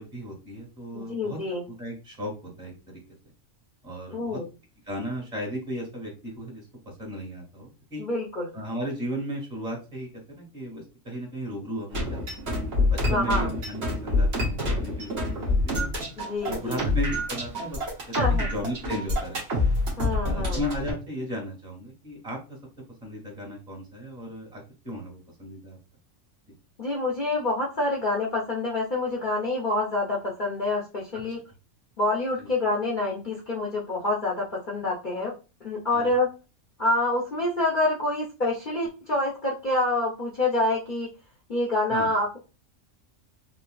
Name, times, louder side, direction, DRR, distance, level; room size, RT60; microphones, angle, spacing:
voice 1, 0.0-3.2 3.8-4.4 4.9-8.0 8.5-12.5 12.9-15.9 16.4-17.8 18.2-19.6 20.2-22.4 23.0-25.8 32.4-32.5 35.9-36.1 41.9-42.1, equal, 30° right, 0 dB, 1.8 m, -35 dB
voice 2, 0.9-1.6 4.1-4.5 8.0-8.5 13.0-13.5 16.2-16.8 18.2-18.5 20.0-20.6 26.8-31.4 32.0-35.3 35.6-36.3 36.8-41.1 41.5-42.4, left 2 dB, 45° left, -4 dB, 0.8 m, -27 dB
sound 1, 11.9-20.9, left 2 dB, 55° right, 1.4 m, -26 dB
3.5 x 2.8 x 2.3 m, 0.31 s
omnidirectional pair, 1.3 m